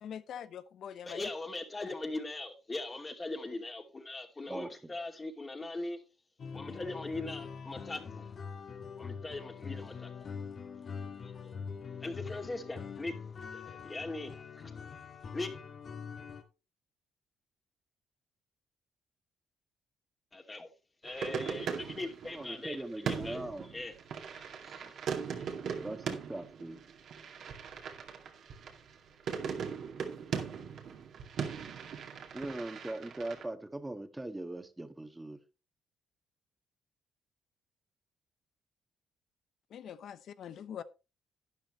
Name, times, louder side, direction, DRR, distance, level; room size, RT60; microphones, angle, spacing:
voice 1, 0.0-1.2 39.7-40.8, left 9 dB, 70° left, 0.9 m, -43 dB
voice 2, 1.0-6.0 6.5-8.2 9.0-10.1 11.0-11.6 12.0-13.1 13.5-14.3 15.3-15.5 20.3-20.7 21.0-23.9 24.3-25.0 25.3-25.5, left 2 dB, 25° left, 2.6 m, -40 dB
voice 3, 4.5-4.9 22.3-23.7 25.8-26.8 32.3-35.4, right 2 dB, 15° right, 1.6 m, -40 dB
sound 1, 6.4-16.4, left 6 dB, 50° left, 2.2 m, -44 dB
sound 2, 21.0-33.4, right 6 dB, 65° right, 2.2 m, -39 dB
12.0 x 9.6 x 3.1 m
cardioid pair, 90°, 0 cm